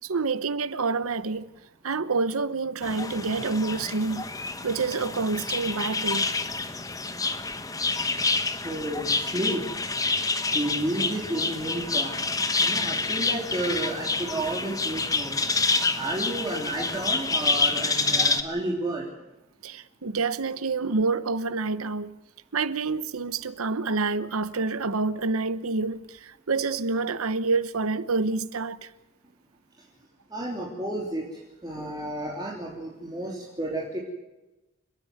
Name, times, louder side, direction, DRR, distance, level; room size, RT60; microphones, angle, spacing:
voice 1, 0.0-1.5 1.8-6.3 19.6-22.2 22.5-28.9, right 4 dB, 90° right, 0.9 m, -28 dB
sound 1, 2.8-18.4, left 3 dB, 15° left, 1.1 m, -28 dB
voice 2, 8.6-9.6 10.5-12.3 12.6-15.4 15.9-19.0 30.3-31.2 31.6-34.0, right 1 dB, 20° right, 3.2 m, -31 dB
30.0 x 10.0 x 9.3 m
head